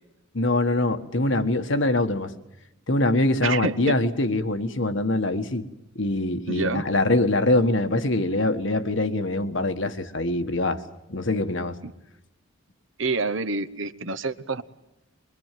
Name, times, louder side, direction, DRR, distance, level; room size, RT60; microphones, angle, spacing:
voice 1, 0.3-2.3 2.9-5.6 5.9-10.8 11.1-11.8, left 2 dB, 60° left, 8 dB, 1.5 m, -23 dB
voice 2, 3.4-4.0 6.5-6.8 11.8-11.9 13.0-14.6, right 3 dB, 65° right, 12 dB, 1.1 m, -27 dB
24.0 x 23.0 x 7.6 m, 0.93 s
head